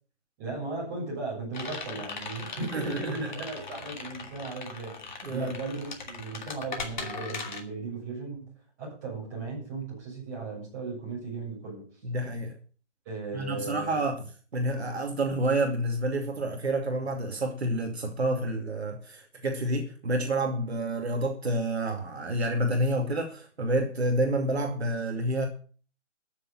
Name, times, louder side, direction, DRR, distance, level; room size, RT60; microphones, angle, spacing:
voice 1, 0.4-8.5 8.8-12.0 13.1-14.0, right 3 dB, 15° right, 7.0 m, -36 dB
sound 1, 1.5-7.6, left 4 dB, 40° left, 2.7 m, -39 dB
voice 2, 2.7-3.3 5.2-5.5 12.0-12.5 13.3-14.2 14.5-25.5, right 1 dB, 60° right, 2.5 m, -29 dB
14.0 x 7.2 x 7.6 m
hypercardioid pair, 175°, 36 cm